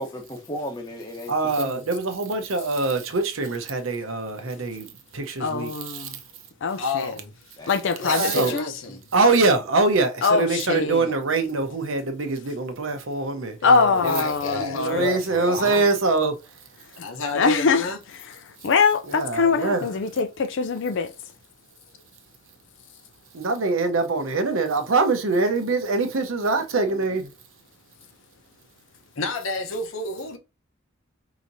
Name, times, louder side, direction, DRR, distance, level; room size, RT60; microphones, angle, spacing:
voice 1, 0.0-1.7 7.6-7.8 8.9-9.0, equal, 20° left, 1.0 m, -34 dB
voice 2, 1.3-4.9 5.1-6.1 8.1-8.5 9.1-13.6 14.0-14.2 14.5-16.3 19.1-19.9 23.3-27.3, right 3 dB, 70° right, 0.8 m, -24 dB
voice 3, 5.4-6.2 6.6-7.1 7.7-8.7 10.2-11.1 13.6-15.1 17.3-18.4 18.6-21.1, left 5 dB, 60° left, 0.4 m, -23 dB
voice 4, 6.8-7.3 8.0-9.0 10.7-10.9 13.6-15.8 17.0-18.0 29.2-30.4, left 3 dB, 80° left, 0.9 m, -30 dB
4.8 x 2.9 x 2.6 m
head